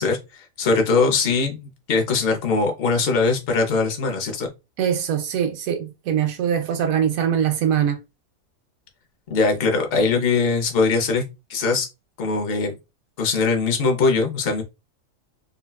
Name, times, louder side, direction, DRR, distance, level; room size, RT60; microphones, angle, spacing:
voice 1, 0.0-4.5 9.3-11.2 11.5-11.9 12.2-12.7 13.2-14.6, left 4 dB, 50° left, 0.8 m, -21 dB
voice 2, 4.8-8.0, right 9 dB, 80° right, 1.0 m, -22 dB
3.9 x 2.2 x 2.2 m
omnidirectional pair, 1.5 m